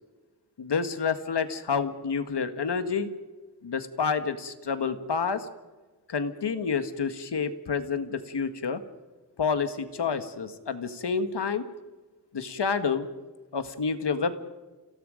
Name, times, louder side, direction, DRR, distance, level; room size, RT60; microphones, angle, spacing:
voice 1, 0.6-3.1 3.6-5.4 6.1-8.8 9.4-11.6 12.3-13.1 13.5-14.4, left 5 dB, 85° left, 9 dB, 1.7 m, -29 dB
29.0 x 17.5 x 5.1 m, 1.2 s
wide cardioid pair, 80°, 40 cm